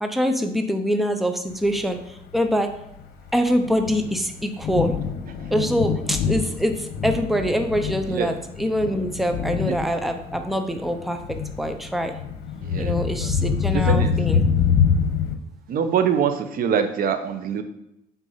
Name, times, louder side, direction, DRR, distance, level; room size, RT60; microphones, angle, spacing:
voice 1, 0.0-2.8 3.3-5.0 5.5-12.1 12.8-14.4, equal, ahead, 6 dB, 0.8 m, -24 dB
Thunder, 1.7-15.3, left 6 dB, 70° left, 1.2 m, -26 dB
voice 2, 12.6-12.9 13.2-13.3 13.9-14.1 15.7-17.6, right 7 dB, 60° right, 8 dB, 1.0 m, -24 dB
8.3 x 4.5 x 5.6 m, 0.82 s
cardioid pair, 110°, 17 cm